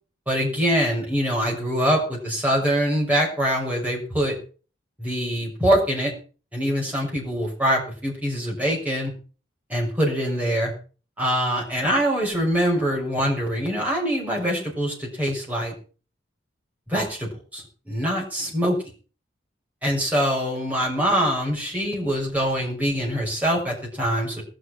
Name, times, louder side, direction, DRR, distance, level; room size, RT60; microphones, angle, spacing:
voice 1, 0.3-4.3 5.0-6.1 6.5-9.1 9.7-10.7 11.2-15.7 16.9-18.8 19.8-24.4, equal, 10° right, -2 dB, 6.2 m, -24 dB
20.5 x 6.8 x 5.9 m, 0.38 s
head